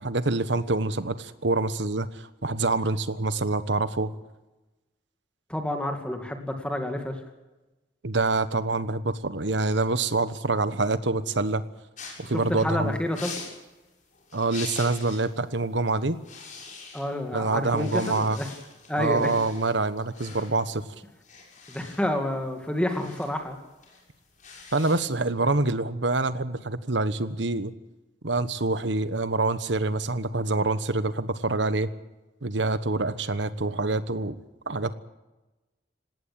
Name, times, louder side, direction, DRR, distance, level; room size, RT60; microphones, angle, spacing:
voice 1, 0.0-4.1 8.0-11.6 12.2-13.0 14.3-16.2 17.3-18.4 18.9-20.8 24.7-27.7 28.2-31.9 32.4-34.4 34.7-34.9, right 3 dB, 75° right, 13 dB, 1.2 m, -26 dB
voice 2, 5.5-7.2 12.5-13.4 16.9-18.5 18.9-19.3 21.7-23.6, left 1 dB, 5° left, 4 dB, 2.4 m, -29 dB
sound 1, 12.0-15.3 15.6-15.8 16.1-17.3 17.6-25.3, left 4 dB, 45° left, 6.8 m, -44 dB
19.5 x 17.5 x 8.7 m, 1.1 s
head